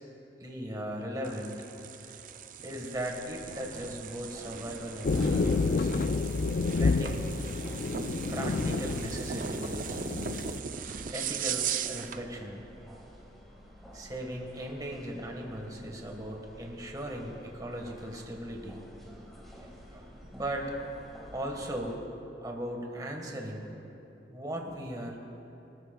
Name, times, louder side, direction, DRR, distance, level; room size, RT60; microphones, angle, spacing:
voice 1, 0.4-1.7 2.6-5.9 6.7-7.3 8.3-10.0 11.1-12.6 13.9-18.8 19.6-20.7 21.3-22.0 22.4-23.7 24.3-25.2, right 1 dB, 20° right, 1 dB, 1.5 m, -38 dB
sound 1, 1.2-12.2, right 7 dB, 50° right, 0.5 m, -38 dB
sound 2, 2.9-22.0, equal, ahead, 1.9 m, -51 dB
sound 3, 5.0-10.6, left 3 dB, 50° left, 0.4 m, -29 dB
25.0 x 13.0 x 2.3 m, 2.9 s
head